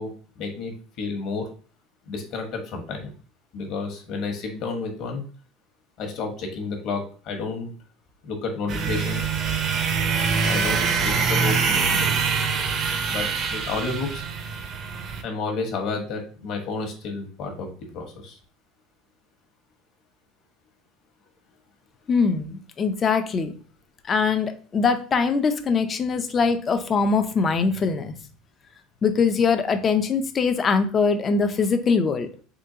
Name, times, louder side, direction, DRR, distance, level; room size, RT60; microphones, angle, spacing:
voice 1, 0.0-1.5 2.0-3.1 3.5-5.2 6.0-7.7 8.2-9.3 10.2-12.3 13.1-14.2 15.2-17.7 17.9-18.4, left 3 dB, 50° left, 3 dB, 1.0 m, -31 dB
sound 1, 8.7-15.2, right 5 dB, 35° right, 0.5 m, -24 dB
voice 2, 22.1-23.6 24.1-28.2 29.0-32.3, left 5 dB, 25° left, 8 dB, 0.4 m, -22 dB
3.7 x 3.3 x 2.7 m, 0.41 s
cardioid pair, 155°, 0 cm